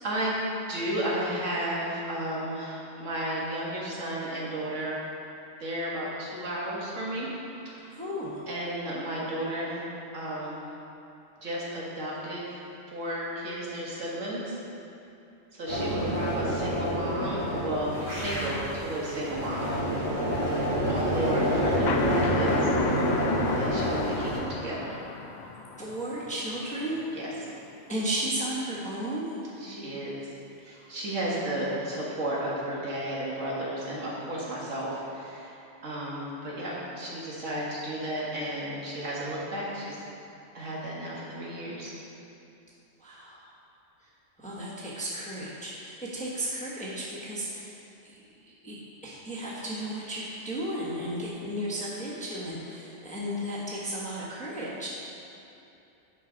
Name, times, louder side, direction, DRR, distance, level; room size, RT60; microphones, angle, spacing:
voice 1, 0.0-0.4 0.7-5.0 5.6-7.3 7.7-7.9 8.5-9.8 10.1-10.6 11.4-12.6 12.9-14.6 15.5-19.7 20.9-22.7 23.6-25.0 27.1-27.3 29.6-30.2 30.6-39.9 40.5-41.9, right 1 dB, 85° right, -6 dB, 1.9 m, -33 dB
voice 2, 7.9-8.4 25.8-27.0 27.9-29.3 30.7-30.9 43.0-43.4 44.4-54.9, right 1 dB, 5° left, -7 dB, 1.1 m, -34 dB
sound 1, 15.7-24.4, equal, 45° right, 2.1 m, -27 dB
sound 2, 21.9-27.3, left 4 dB, 60° left, 0.4 m, -35 dB
9.4 x 5.7 x 3.9 m, 2.9 s
omnidirectional pair, 1.3 m